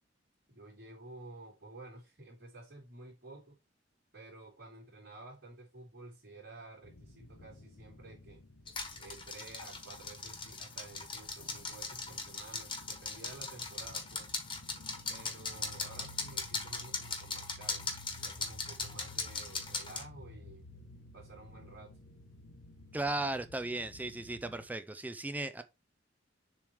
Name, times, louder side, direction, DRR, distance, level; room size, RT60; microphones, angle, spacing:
voice 1, 0.5-3.6 4.1-8.4 9.0-14.3 15.1-17.9 18.2-20.6 21.1-21.9, right 2 dB, 60° right, 3.1 m, -52 dB
sound 1, 6.8-24.7, left 1 dB, 75° left, 1.1 m, -54 dB
sound 2, 8.7-20.0, left 4 dB, 30° left, 1.3 m, -40 dB
voice 2, 22.9-25.6, right 2 dB, 10° right, 0.3 m, -36 dB
7.0 x 3.1 x 4.7 m
head